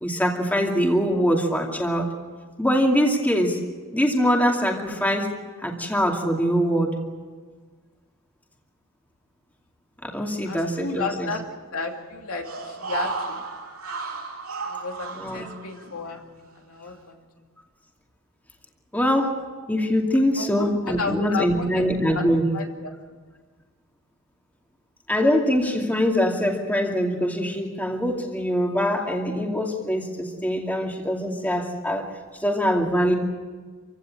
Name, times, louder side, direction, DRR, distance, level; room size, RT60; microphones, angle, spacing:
voice 1, 0.0-2.1 2.6-3.6 3.9-5.3 5.6-6.9 10.0-11.3 15.2-15.5 18.9-19.3 19.7-22.4 25.1-32.1 32.4-33.1, equal, 10° left, 1 dB, 2.5 m, -23 dB
voice 2, 10.4-11.4 11.7-13.4 14.6-16.2 16.5-17.2 20.3-21.8 22.1-22.2 22.5-22.9, left 4 dB, 85° left, 2 dB, 2.8 m, -33 dB
sound 1, 12.4-16.1 16.5-16.6, right 3 dB, 85° right, 3.5 m, -33 dB
27.0 x 16.5 x 9.0 m, 1.5 s
head